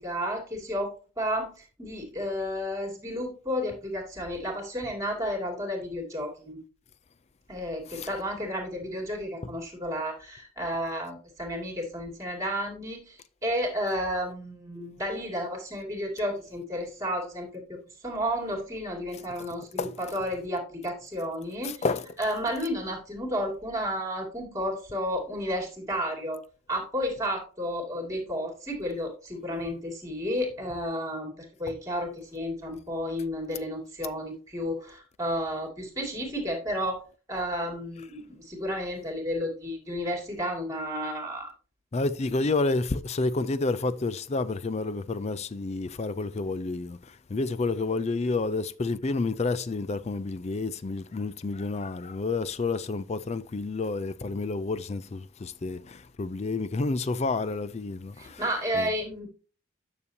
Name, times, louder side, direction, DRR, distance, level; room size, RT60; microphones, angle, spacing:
voice 1, 0.0-6.6 7.5-21.9 22.2-26.4 26.7-37.0 37.3-41.5 58.2-59.3, equal, 15° right, 2.4 m, -32 dB
voice 2, 21.6-22.1 41.9-58.4 58.7-58.9, left 3 dB, 30° left, 0.4 m, -30 dB
9.5 x 6.8 x 2.7 m
head